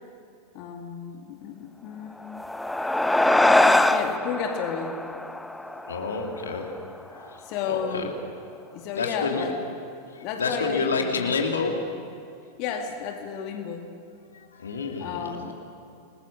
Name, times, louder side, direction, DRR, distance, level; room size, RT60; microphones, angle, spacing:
voice 1, 0.5-2.4 3.9-5.0 7.4-8.1 8.7-9.6 10.2-11.3 12.6-13.9 15.0-15.5, left 6 dB, 45° left, 3 dB, 2.3 m, -32 dB
sound 1, 2.2-7.0, left 1 dB, 5° left, 0.9 m, -23 dB
voice 2, 5.3-8.1 8.9-9.5 10.1-11.9 14.3-15.5, left 4 dB, 70° left, 2 dB, 2.7 m, -30 dB
29.0 x 21.0 x 6.8 m, 2.4 s
figure-of-eight pair, 90°, 0 cm